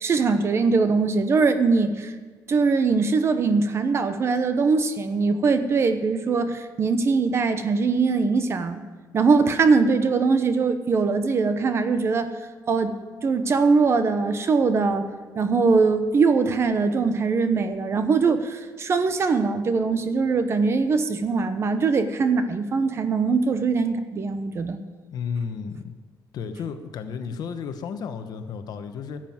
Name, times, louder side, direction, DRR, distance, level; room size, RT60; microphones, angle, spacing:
voice 1, 0.0-2.1 2.5-8.8 9.1-12.4 12.7-12.9 13.2-15.1 15.3-24.8, right 4 dB, 35° right, 10 dB, 0.9 m, -22 dB
voice 2, 25.1-25.9 26.3-29.2, left 6 dB, 60° left, 8 dB, 1.1 m, -32 dB
12.0 x 7.5 x 9.5 m, 1.4 s
cardioid pair, 150°, 8 cm